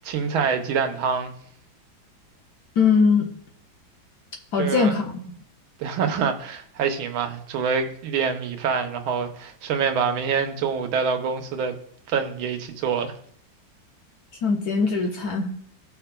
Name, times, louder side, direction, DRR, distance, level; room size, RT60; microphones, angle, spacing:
voice 1, 0.0-1.3 4.6-4.9 5.8-11.8 12.1-13.1, right 6 dB, 85° right, 1.7 m, -25 dB
voice 2, 2.8-3.3 4.5-5.2 14.4-15.5, left 5 dB, 60° left, 1.1 m, -21 dB
16.5 x 5.8 x 2.2 m
omnidirectional pair, 2.2 m